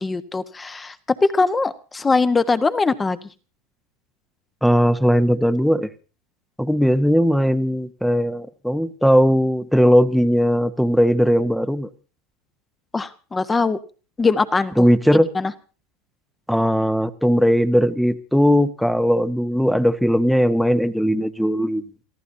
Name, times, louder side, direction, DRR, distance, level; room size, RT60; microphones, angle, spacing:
voice 1, 0.0-3.3 12.9-13.8 14.2-14.8 15.1-15.5, left 4 dB, 20° left, 11 dB, 1.3 m, -21 dB
voice 2, 4.6-5.9 6.6-11.9 14.8-15.3 16.5-21.8, equal, ahead, 13 dB, 1.1 m, -18 dB
28.5 x 14.5 x 2.8 m, 0.36 s
hypercardioid pair, 95°, 0 cm